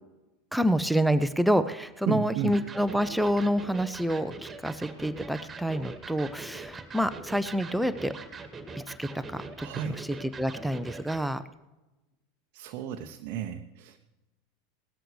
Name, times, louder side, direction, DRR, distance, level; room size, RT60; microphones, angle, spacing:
voice 1, 0.5-8.1 9.0-9.7 10.0-11.4, equal, ahead, 11 dB, 0.6 m, -27 dB
voice 2, 2.1-2.5 9.6-10.0 12.5-14.0, right 9 dB, 50° right, 5 dB, 0.8 m, -33 dB
Electric guitar, 2.5-11.3, right 4 dB, 20° right, 1.9 m, -43 dB
18.0 x 13.5 x 3.2 m, 1.1 s
figure-of-eight pair, 80°, 0 cm